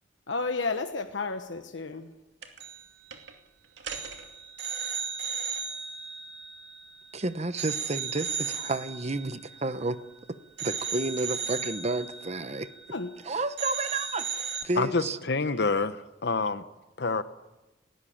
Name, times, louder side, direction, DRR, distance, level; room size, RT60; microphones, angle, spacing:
voice 1, 0.3-2.1 12.9-13.1, left 3 dB, 80° left, 1.2 m, -32 dB
sound 1, 2.4-2.8 3.1-3.3 3.8-7.1 7.6-10.2 10.6-13.3 13.6-14.6, right 6 dB, 70° right, 2.5 m, -36 dB
voice 2, 7.1-10.0 10.3-12.7 13.2-15.6, right 2 dB, 35° right, 1.0 m, -31 dB
voice 3, 14.8-16.6 17.0-17.2, left 3 dB, 60° left, 1.1 m, -27 dB
19.0 x 18.0 x 8.8 m
head